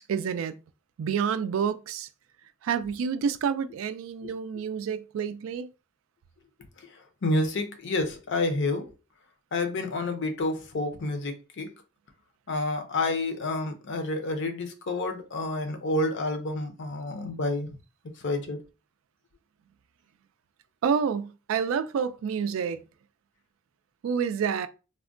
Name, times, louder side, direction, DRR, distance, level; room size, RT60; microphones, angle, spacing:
voice 1, 0.1-0.5 1.0-2.1 2.6-5.7 20.8-22.8 24.0-24.7, right 6 dB, 70° right, 0.3 m, -28 dB
voice 2, 6.8-8.9 9.5-11.7 12.5-17.8 18.2-18.6, left 2 dB, 60° left, 0.6 m, -29 dB
3.5 x 2.1 x 2.4 m
head